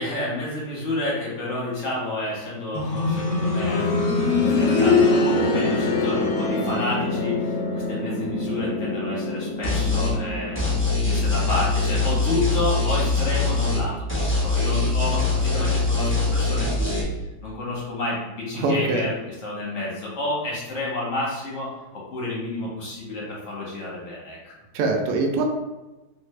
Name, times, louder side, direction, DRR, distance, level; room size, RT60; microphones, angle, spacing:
voice 1, 0.0-13.9 14.4-17.0 17.4-19.1 19.4-24.5, left 2 dB, 50° left, -5 dB, 1.0 m, -30 dB
sound 1, 2.7-13.5 14.9-15.0, left 3 dB, 85° left, 1.5 m, -24 dB
sound 2, 9.6-10.2 10.6-13.8 14.1-17.0, left 3 dB, 15° left, 0.4 m, -23 dB
voice 2, 18.6-19.1 24.7-25.4, right 3 dB, 75° right, 2 dB, 0.8 m, -23 dB
3.2 x 2.5 x 3.1 m, 1.1 s
omnidirectional pair, 2.3 m